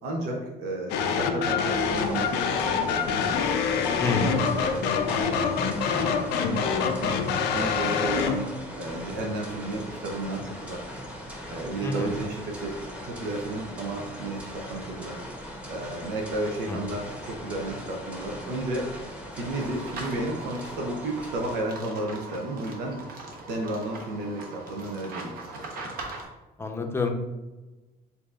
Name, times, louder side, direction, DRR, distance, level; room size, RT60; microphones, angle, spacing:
voice 1, 0.0-5.6 5.9-7.1 7.5-8.4 8.8-11.0 11.5-15.2 15.7-18.9 19.3-23.0 23.5-25.3, right 2 dB, 85° right, 1 dB, 0.7 m, -33 dB
sound 1, 0.9-8.5, left 6 dB, 80° left, 0.5 m, -26 dB
sound 2, 1.7-21.6, equal, 10° right, 0.9 m, -40 dB
voice 2, 4.0-4.4 11.8-12.1 16.6-16.8 26.6-27.1, left 3 dB, 15° left, 3 dB, 0.6 m, -27 dB
sound 3, 19.5-26.2, right 2 dB, 60° right, 1.0 m, -40 dB
6.8 x 2.7 x 2.4 m, 1.1 s
cardioid pair, 110°, 17 cm